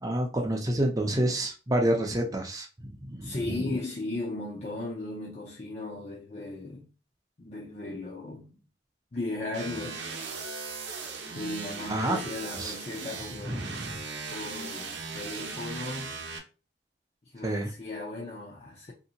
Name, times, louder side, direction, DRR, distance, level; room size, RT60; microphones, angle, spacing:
voice 1, 0.0-3.8 11.9-12.2 12.5-12.7 13.4-13.9 17.4-17.7, right 1 dB, 20° right, 0.6 m, -29 dB
voice 2, 3.2-6.9 7.4-8.6 9.1-10.0 11.4-13.8 14.3-16.1 17.2-18.9, left 2 dB, 35° left, 0.5 m, -36 dB
sound 1, 9.5-16.4, right 4 dB, 80° right, 0.7 m, -38 dB
3.2 x 2.8 x 2.7 m
head